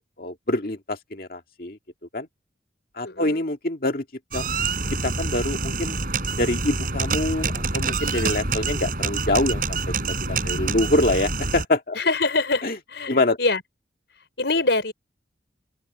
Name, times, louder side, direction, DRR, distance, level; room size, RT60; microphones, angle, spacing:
voice 1, 0.0-1.8 2.1-2.3 3.0-4.0 4.3-4.5 5.0-6.0 6.4-12.0 12.6-12.8 13.1-13.4, left 1 dB, 50° left, 2.1 m, -25 dB
voice 2, 3.0-3.4 11.9-13.6 14.4-14.9, left 3 dB, 70° left, 4.6 m, -24 dB
sound 1, 4.3-11.6, right 3 dB, 50° right, 5.1 m, -26 dB
open air
head